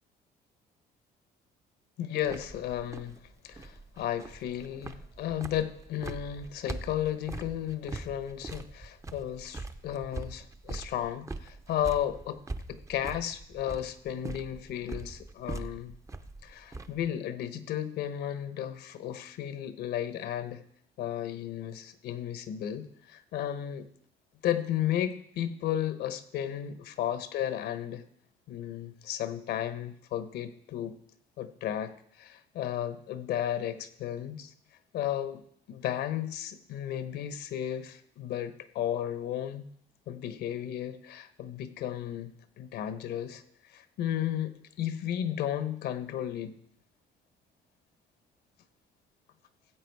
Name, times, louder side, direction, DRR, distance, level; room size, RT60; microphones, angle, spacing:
voice 1, 2.0-3.2 3.4-12.4 12.7-15.9 16.4-20.6 21.0-23.9 24.4-28.0 28.5-31.0 31.4-34.5 34.9-35.4 35.7-39.7 40.1-46.5, left 11 dB, 75° left, 12 dB, 1.0 m, -34 dB
sound 1, 2.2-17.1, right 3 dB, 20° right, 0.7 m, -42 dB
14.5 x 7.9 x 4.6 m, 0.69 s
cardioid pair, 110°, 17 cm